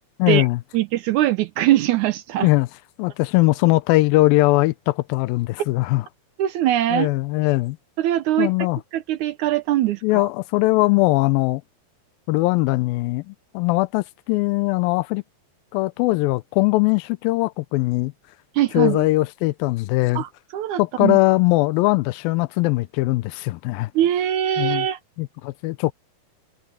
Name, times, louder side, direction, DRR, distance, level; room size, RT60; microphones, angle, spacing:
voice 1, 0.2-0.6 2.4-2.7 3.0-6.1 6.9-7.8 8.4-8.8 10.0-11.6 12.3-15.2 15.7-18.1 18.7-20.2 20.8-23.9 24.6-24.9 25.2-25.9, left 20 dB, 90° left, 2.4 m, -20 dB
voice 2, 0.7-2.5 6.4-7.1 8.0-8.5 8.9-10.3 18.5-19.1 20.2-21.2 24.0-25.0, right 13 dB, 75° right, 1.9 m, -22 dB
omnidirectional pair, 4.1 m